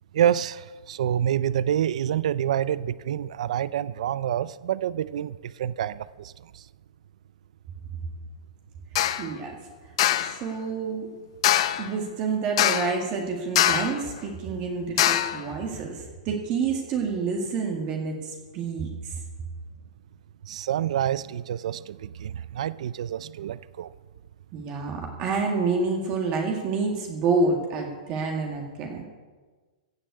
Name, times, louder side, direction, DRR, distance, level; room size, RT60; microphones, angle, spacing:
voice 1, 0.1-6.6 20.5-23.9, right 10 dB, 65° right, 17 dB, 0.4 m, -27 dB
voice 2, 8.9-9.5 10.2-11.1 11.8-19.2 24.5-29.0, right 4 dB, 30° right, 1 dB, 1.9 m, -28 dB
sound 1, 9.0-9.3 10.0-10.4 11.4-11.9 12.6-13.0 13.6-14.0 15.0-15.4, left 12 dB, 50° left, 0.7 m, -22 dB
15.5 x 7.7 x 8.4 m, 1.4 s
hypercardioid pair, 165°, 4 cm